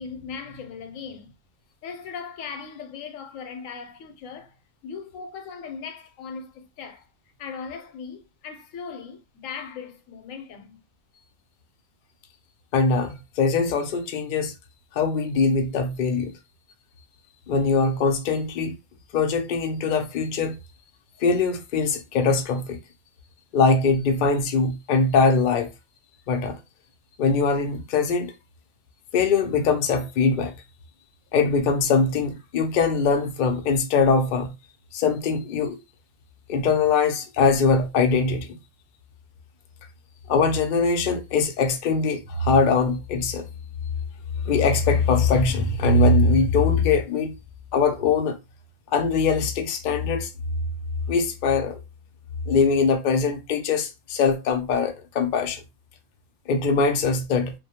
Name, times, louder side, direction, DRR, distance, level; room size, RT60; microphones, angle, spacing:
voice 1, 0.0-1.3 1.8-4.6 4.8-7.1 7.4-10.8, left 6 dB, 85° left, 1.0 m, -38 dB
voice 2, 12.7-14.5 14.9-16.3 17.5-18.7 19.1-20.6 21.2-22.8 23.5-25.7 26.3-26.6 27.2-28.3 29.1-30.5 31.3-34.5 34.9-35.8 36.5-38.6 40.3-43.5 44.5-47.4 47.7-48.4 48.9-50.3 51.1-51.8 52.5-55.6 56.5-57.5, left 4 dB, 65° left, 0.5 m, -22 dB
2.3 x 2.1 x 2.7 m
omnidirectional pair, 1.3 m